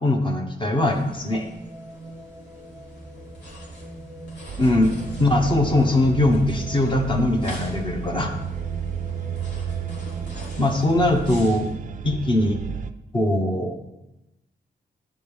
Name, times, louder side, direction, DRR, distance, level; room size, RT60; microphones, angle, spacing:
voice 1, 0.0-1.5 4.6-4.9 5.2-8.3 10.6-11.7 12.0-12.6 13.1-13.8, left 1 dB, 25° left, 4 dB, 0.9 m, -21 dB
sound 1, 0.7-11.7, right 1 dB, 5° right, 0.9 m, -41 dB
sound 2, 0.8-11.7, left 1 dB, 70° left, 3.2 m, -46 dB
sound 3, 4.5-12.9, right 8 dB, 45° right, 0.4 m, -33 dB
9.6 x 5.2 x 5.3 m, 0.94 s
wide cardioid pair, 155°, 18 cm